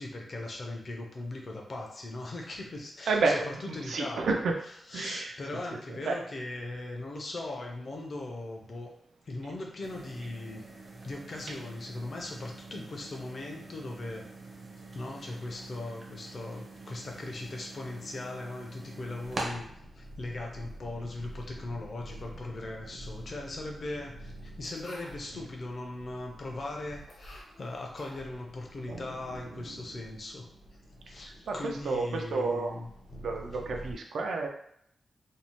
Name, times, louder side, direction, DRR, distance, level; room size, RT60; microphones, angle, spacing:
voice 1, 0.0-4.4 4.9-8.9 9.2-10.6 11.0-14.3 14.9-19.7 20.0-30.5 31.1-32.9, left 2 dB, 45° left, 0 dB, 0.5 m, -39 dB
voice 2, 3.1-4.6 4.9-5.3 6.0-6.2 28.9-29.0 29.5-29.6 29.9-30.0 31.5-31.6 31.8-32.8 33.2-34.5, right 3 dB, 90° right, 2 dB, 0.4 m, -30 dB
sound 1, 9.8-19.5, right 2 dB, 40° right, 0.6 m, -45 dB
sound 2, 19.2-33.9, equal, 85° left, 1.0 m, -48 dB
2.6 x 2.0 x 2.9 m, 0.70 s
wide cardioid pair, 160°, 0 cm